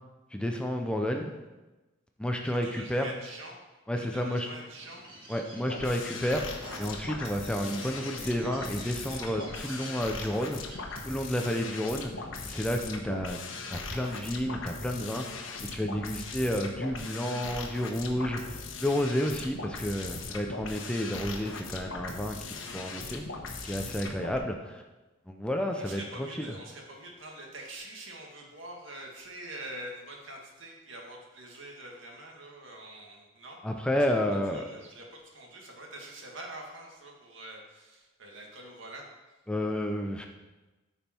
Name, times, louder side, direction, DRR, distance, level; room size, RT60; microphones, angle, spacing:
voice 1, 0.3-1.3 2.2-3.1 3.9-4.5 5.3-10.8 11.1-13.4 13.7-15.4 15.7-23.2 23.6-24.8 25.3-26.3 33.6-34.6 39.5-40.3, equal, 5° left, 3 dB, 0.6 m, -31 dB
voice 2, 2.4-3.6 3.9-5.0 25.7-33.6 34.1-39.1, right 1 dB, 70° right, 0 dB, 2.0 m, -45 dB
Bird, 4.7-11.3, right 1 dB, 25° right, 2.0 m, -48 dB
sound 1, 5.7-24.4, left 3 dB, 70° left, 1.2 m, -39 dB
13.5 x 5.4 x 4.4 m, 1.1 s
head